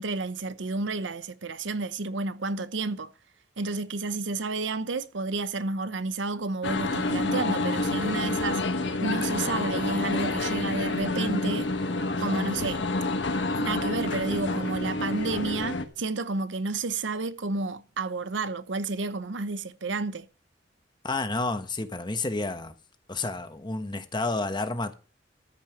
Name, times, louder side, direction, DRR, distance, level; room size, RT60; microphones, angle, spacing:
voice 1, 0.0-3.1 3.6-8.6 9.0-11.7 12.2-12.8 13.6-20.3, right 3 dB, 90° right, 0.8 m, -31 dB
sound 1, 6.6-15.8, left 2 dB, 75° left, 1.3 m, -28 dB
voice 2, 21.0-22.7 23.1-24.9, left 2 dB, 25° left, 1.1 m, -30 dB
14.0 x 5.6 x 6.9 m
head